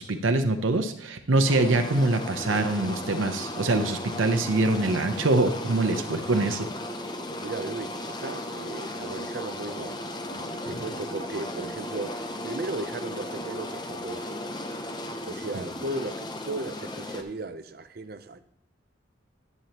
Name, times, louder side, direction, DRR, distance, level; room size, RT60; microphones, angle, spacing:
voice 1, 0.0-6.7, right 2 dB, 90° right, 0.7 m, -24 dB
sound 1, 1.5-17.2, left 1 dB, 20° left, 0.6 m, -36 dB
voice 2, 7.4-14.5 15.2-18.4, right 2 dB, 50° right, 0.5 m, -36 dB
11.0 x 8.6 x 2.9 m
head